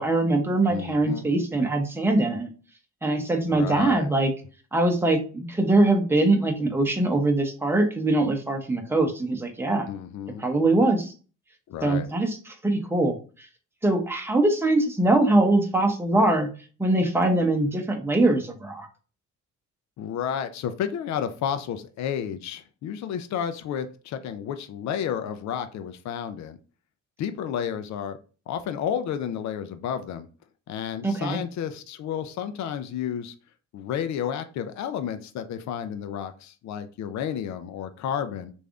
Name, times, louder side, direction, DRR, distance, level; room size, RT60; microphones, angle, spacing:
voice 1, 0.0-2.5 3.0-4.3 4.7-9.9 10.4-11.1 11.8-13.5 13.8-16.5 16.8-18.9 31.0-31.4, right 2 dB, 10° right, 3 dB, 0.8 m, -22 dB
voice 2, 0.7-1.3 3.5-4.1 9.9-10.4 11.7-12.1 20.0-26.6 27.2-28.2 28.5-30.3 30.7-33.3 33.7-38.5, left 8 dB, 65° left, 9 dB, 0.5 m, -31 dB
3.3 x 2.6 x 3.5 m, 0.36 s
cardioid pair, 90°, 30 cm